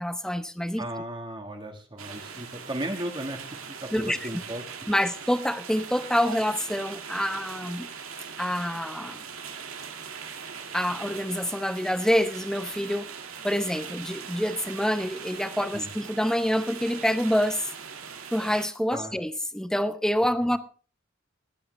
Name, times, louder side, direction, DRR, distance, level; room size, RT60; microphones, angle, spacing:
voice 1, 0.0-0.9 3.9-4.3 4.9-7.9 8.4-9.2 10.7-13.1 13.4-17.7 18.3-20.6, equal, 5° left, 0.8 m, -27 dB
voice 2, 0.8-3.4 3.8-4.6 15.7-15.9 18.9-19.1, right 1 dB, 25° right, 1.6 m, -35 dB
sound 1, 2.0-18.7, right 6 dB, 90° right, 2.0 m, -41 dB
21.0 x 8.6 x 3.2 m
head